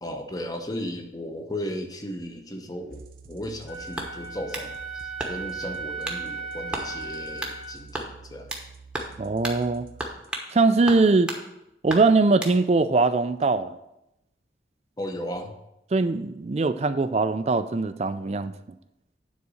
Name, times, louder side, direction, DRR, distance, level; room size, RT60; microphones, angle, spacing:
voice 1, 0.0-8.5 15.0-15.5, left 1 dB, 20° left, 0.8 m, -35 dB
sound 1, 2.9-10.8, right 4 dB, 55° right, 0.8 m, -48 dB
Wind instrument woodwind instrument, 3.7-7.8, right 5 dB, 55° left, 1.5 m, -36 dB
sound 2, 4.0-4.7 5.2-5.6 6.0-6.2 6.7-6.9 7.4-7.6 7.9-8.7 8.9-9.2 9.4-9.6 10.0-10.5 10.9-11.4 11.9-12.6, right 1 dB, 5° right, 1.0 m, -33 dB
voice 2, 9.2-9.9 10.5-11.3 11.8-13.7 15.9-18.5, right 3 dB, 35° right, 0.4 m, -21 dB
9.6 x 4.1 x 6.3 m
head